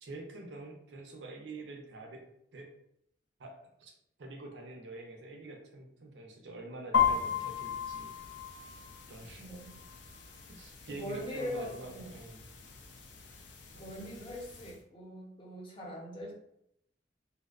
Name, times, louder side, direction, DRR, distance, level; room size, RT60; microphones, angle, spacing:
voice 1, 0.0-2.2 2.5-2.7 3.4-3.9 4.2-8.1 9.1-9.5 10.5-12.5 13.7-14.1, right 2 dB, 80° right, 2 dB, 0.5 m, -46 dB
sound 1, 6.9-14.7, left 7 dB, 85° left, 0.4 m, -36 dB
voice 2, 9.4-9.8 10.6-12.2 13.8-16.3, left 1 dB, 30° left, -3 dB, 0.6 m, -42 dB
2.6 x 2.1 x 2.3 m, 0.75 s
head